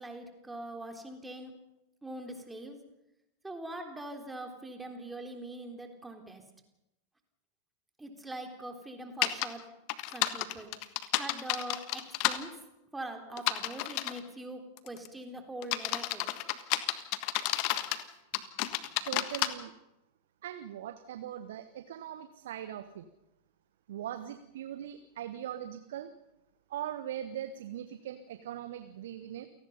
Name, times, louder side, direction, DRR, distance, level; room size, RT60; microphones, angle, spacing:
voice 1, 0.0-1.6 2.0-2.8 3.4-6.4 8.0-9.7 10.1-10.7 11.2-12.6 12.9-16.3, right 1 dB, 10° right, 4 dB, 3.7 m, -42 dB
sound 1, 9.2-9.5 9.9-12.4 13.4-14.2 14.8-15.1 15.6-18.0 18.3-19.5, left 16 dB, 45° left, 1.5 m, -30 dB
voice 2, 19.0-19.7 20.4-23.0 23.9-26.1 26.7-29.5, right 11 dB, 60° right, 10 dB, 1.3 m, -40 dB
29.0 x 18.0 x 5.6 m, 0.89 s
figure-of-eight pair, 90°, 0 cm